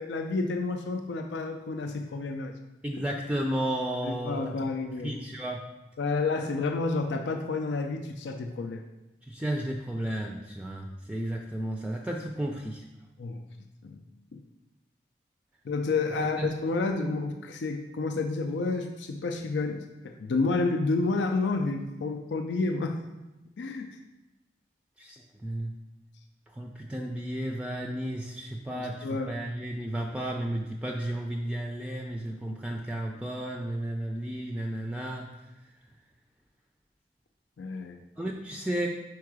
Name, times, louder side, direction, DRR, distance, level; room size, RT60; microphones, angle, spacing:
voice 1, 0.0-2.5 4.0-5.2 6.0-8.8 13.2-13.5 13.8-14.0 14.3-14.4 15.7-23.0 23.6-24.0 28.7-29.3 37.6-38.0, left 3 dB, 85° left, 5 dB, 0.4 m, -30 dB
voice 2, 2.8-4.5 5.0-5.6 9.2-12.8 16.2-16.5 25.0-25.7 26.5-35.3 38.2-38.9, right 1 dB, 5° right, 1 dB, 0.4 m, -33 dB
4.7 x 4.6 x 4.8 m, 1.0 s
head